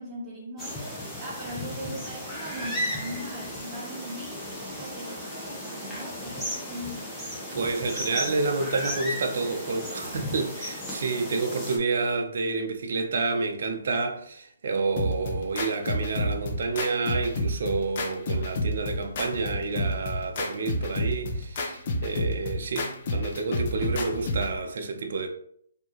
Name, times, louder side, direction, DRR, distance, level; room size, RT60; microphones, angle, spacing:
voice 1, 0.0-7.4, equal, 20° right, 1.1 m, -40 dB
sound 1, 0.6-11.8, equal, 5° left, 1.0 m, -35 dB
voice 2, 7.5-25.3, right 4 dB, 60° right, 0.7 m, -29 dB
sound 2, 15.0-24.6, left 1 dB, 45° left, 0.8 m, -30 dB
4.4 x 2.9 x 3.0 m
hypercardioid pair, 155°, 0 cm